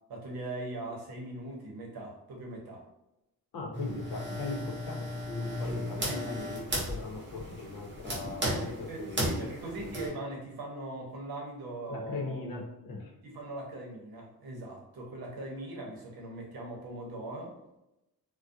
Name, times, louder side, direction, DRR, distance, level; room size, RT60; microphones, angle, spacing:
voice 1, 0.1-2.8 6.1-6.9 8.4-12.4 13.2-17.5, right 1 dB, 90° right, -1 dB, 0.8 m, -40 dB
voice 2, 3.5-8.5 8.8-9.4 9.8-9.9 11.9-13.1, left 3 dB, 70° left, -1 dB, 0.7 m, -39 dB
sound 1, 3.7-10.1, equal, 30° right, 0.7 m, -35 dB
2.3 x 2.1 x 2.6 m, 0.89 s
wide cardioid pair, 160°, 36 cm